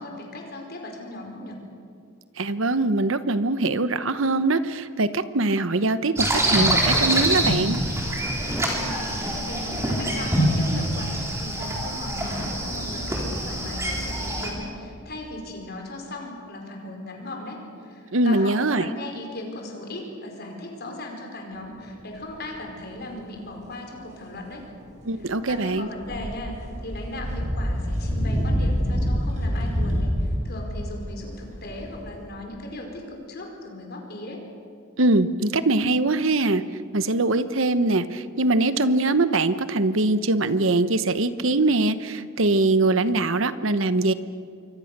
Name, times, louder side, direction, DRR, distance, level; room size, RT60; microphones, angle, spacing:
voice 1, 0.0-1.6 8.8-24.7 25.5-34.4, left 1 dB, 50° left, 2 dB, 4.9 m, -37 dB
voice 2, 2.4-7.8 18.1-18.9 25.0-25.9 35.0-36.6 36.9-44.1, right 2 dB, 65° right, 12 dB, 1.0 m, -22 dB
sound 1, 6.2-14.5, right 1 dB, 15° right, 3.9 m, -25 dB
sound 2, 22.6-22.7 25.0-32.2, equal, 35° right, 6.1 m, -27 dB
27.5 x 24.0 x 6.8 m, 2.3 s
head